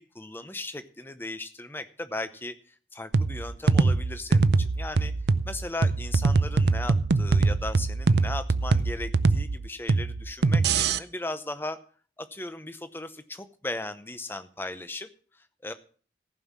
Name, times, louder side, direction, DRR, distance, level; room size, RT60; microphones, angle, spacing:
voice 1, 0.0-5.1 5.4-11.8 12.3-15.7, left 2 dB, 10° left, 11 dB, 0.7 m, -37 dB
sound 1, 3.1-11.0, right 3 dB, 75° right, 0.6 m, -23 dB
15.0 x 5.5 x 7.3 m, 0.43 s
head